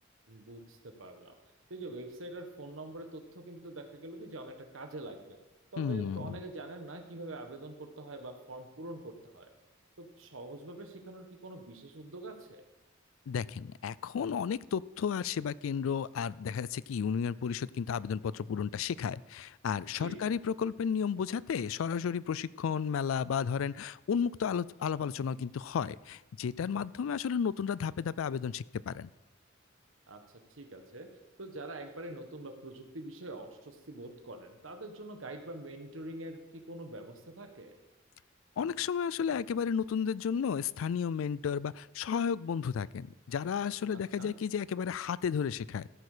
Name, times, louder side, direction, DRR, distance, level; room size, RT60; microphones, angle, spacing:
voice 1, 0.3-1.3 1.7-5.4 5.7-9.5 10.0-12.6 19.9-20.3 30.1-30.2 30.6-31.1 31.4-37.7 44.2-44.4, right 2 dB, 70° right, 5 dB, 1.3 m, -45 dB
voice 2, 5.8-6.4 13.3-29.1 38.6-45.9, left 7 dB, 75° left, 20 dB, 0.4 m, -33 dB
14.0 x 8.3 x 5.0 m, 1.0 s
head